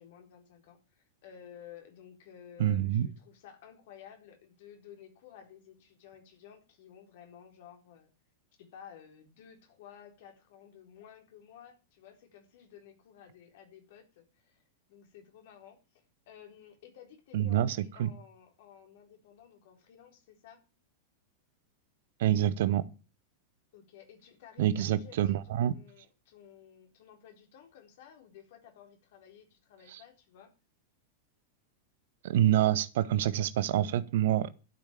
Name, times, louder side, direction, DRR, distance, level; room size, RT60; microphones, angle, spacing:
voice 1, 0.0-8.1 8.6-14.6 14.9-20.6 23.7-30.5, left 9 dB, 55° left, 4.1 m, -54 dB
voice 2, 2.6-3.1 17.3-18.1 22.2-22.8 24.6-25.7 29.9-30.0 32.2-34.5, right 11 dB, 55° right, 1.0 m, -27 dB
12.5 x 8.5 x 7.5 m
figure-of-eight pair, 90°, 0 cm